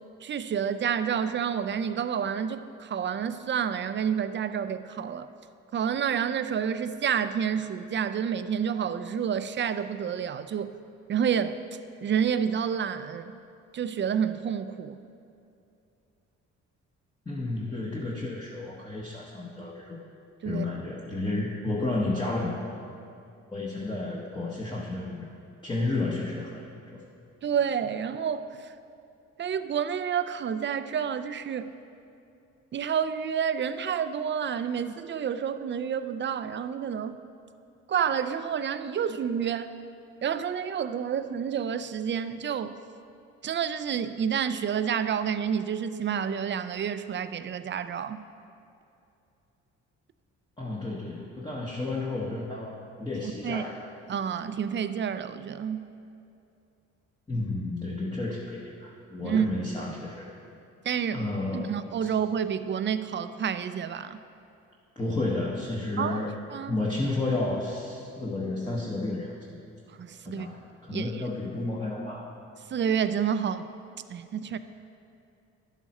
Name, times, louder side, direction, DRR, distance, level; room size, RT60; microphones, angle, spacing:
voice 1, 0.2-5.3 5.7-10.7 11.1-11.6 12.0-13.3 13.7-15.0 20.4-20.7 27.4-28.7 29.4-31.7 32.7-37.2 37.9-39.8 40.2-42.7 43.4-48.2 53.2-53.6 54.1-55.9 59.2-59.5 60.8-61.2 61.5-64.2 66.0-66.2 66.5-66.8 70.0-70.5 70.9-71.2 72.7-73.7 74.1-74.6, right 8 dB, 40° right, 12 dB, 0.5 m, -29 dB
voice 2, 17.3-20.0 20.4-22.6 23.5-25.3 25.6-27.0 50.6-53.7 57.3-60.3 61.1-61.8 65.0-66.4 66.7-69.6 70.2-72.3, left 2 dB, 15° left, -3 dB, 1.1 m, -32 dB
11.5 x 7.1 x 4.3 m, 2.7 s
cardioid pair, 90°, 30 cm